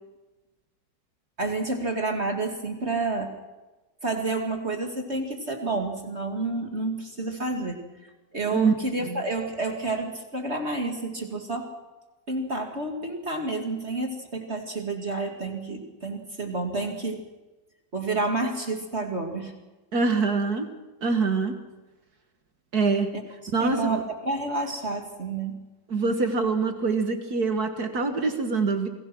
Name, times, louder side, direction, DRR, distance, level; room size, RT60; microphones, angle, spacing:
voice 1, 1.4-3.3 4.0-11.7 12.3-17.2 17.9-19.5 23.6-25.6, right 2 dB, 35° right, 2 dB, 2.6 m, -29 dB
voice 2, 19.9-20.7 21.0-21.6 22.7-23.1 23.5-24.0 25.9-28.9, right 4 dB, 60° right, 6 dB, 2.1 m, -24 dB
28.0 x 19.5 x 6.1 m, 1.1 s
omnidirectional pair, 1.9 m